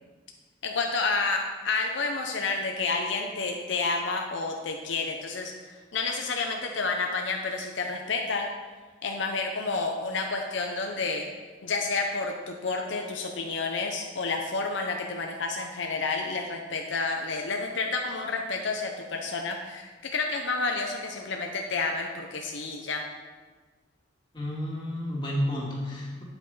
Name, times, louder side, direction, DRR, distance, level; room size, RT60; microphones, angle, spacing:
voice 1, 0.6-5.5 5.9-8.5 9.0-11.3 11.6-23.0, left 3 dB, 70° left, 2 dB, 0.7 m, -30 dB
voice 2, 24.3-26.2, equal, 25° left, -4 dB, 2.0 m, -31 dB
9.0 x 8.0 x 4.0 m, 1.4 s
head